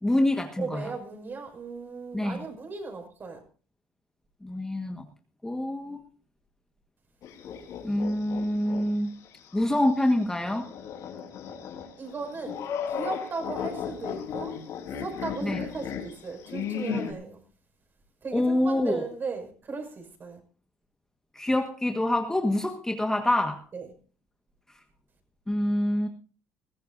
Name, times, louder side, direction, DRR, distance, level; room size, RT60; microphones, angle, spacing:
voice 1, 0.0-0.9 2.1-2.4 4.4-5.1 5.4-6.0 7.8-9.1 9.5-10.7 15.4-15.6 18.3-19.1 21.3-23.7 25.5-26.1, left 1 dB, 10° left, 1.5 m, -26 dB
voice 2, 0.6-3.4 12.0-14.6 14.9-17.4 18.2-20.4 23.7-23.9, right 4 dB, 35° right, 5.9 m, -37 dB
sound 1, 7.2-8.8 9.2-9.3 10.4-17.1, left 7 dB, 60° left, 4.0 m, -35 dB
21.5 x 15.0 x 2.6 m
supercardioid pair, 105°, 6 cm